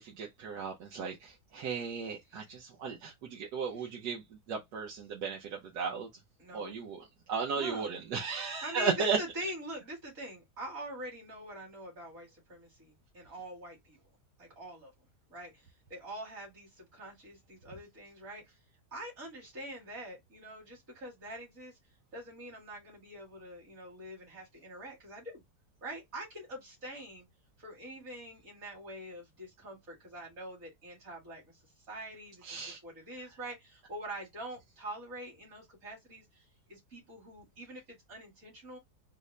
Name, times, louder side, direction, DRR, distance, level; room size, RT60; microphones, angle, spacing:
voice 1, 0.0-6.1 6.5-7.0 7.3-9.2 32.4-32.8, right 5 dB, 75° right, 1.4 m, -35 dB
voice 2, 6.4-6.8 7.6-7.9 8.6-14.0 14.4-14.9 15.3-18.6 18.9-21.8 22.1-25.4 25.8-27.3 27.6-38.8, right 1 dB, 55° right, 2.3 m, -45 dB
4.0 x 2.1 x 3.2 m
omnidirectional pair, 1.8 m